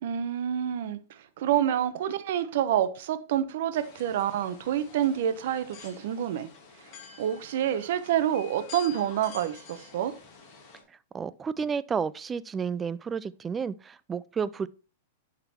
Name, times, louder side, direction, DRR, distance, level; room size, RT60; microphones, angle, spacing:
voice 1, 0.0-1.0 1.4-6.5 7.2-10.1, right 10 dB, 60° right, 0.9 m, -28 dB
sound 1, 3.7-10.8, left 6 dB, 40° left, 2.3 m, -48 dB
voice 2, 11.1-14.7, right 6 dB, 15° right, 0.3 m, -31 dB
10.5 x 3.9 x 4.3 m
supercardioid pair, 150°, 0 cm